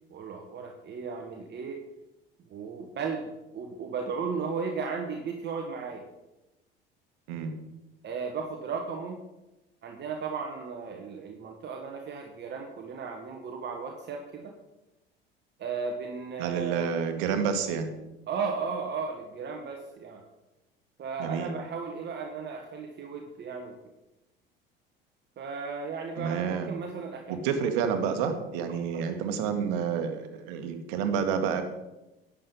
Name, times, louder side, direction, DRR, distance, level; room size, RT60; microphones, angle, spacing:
voice 1, 0.1-1.8 2.5-6.0 8.0-9.2 9.8-14.5 15.6-16.9 18.3-20.2 21.0-23.8 25.4-27.6, right 5 dB, 35° right, 2 dB, 1.5 m, -35 dB
voice 2, 16.4-17.9 21.2-21.5 26.2-26.8 27.3-31.6, right 7 dB, 60° right, 7 dB, 1.7 m, -29 dB
11.0 x 8.6 x 5.4 m, 0.97 s
figure-of-eight pair, 65°, 29 cm